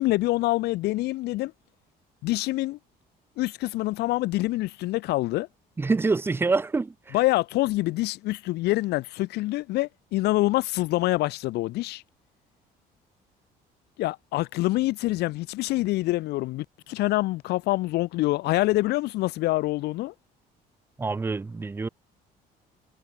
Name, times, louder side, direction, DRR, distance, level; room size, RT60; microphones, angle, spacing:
voice 1, 0.0-1.5 2.2-2.8 3.4-5.5 7.1-12.0 14.0-20.1, left 18 dB, 80° left, 0.7 m, -26 dB
voice 2, 5.8-7.1 21.0-21.9, right 3 dB, 15° right, 0.4 m, -26 dB
cardioid pair, 110°, 17 cm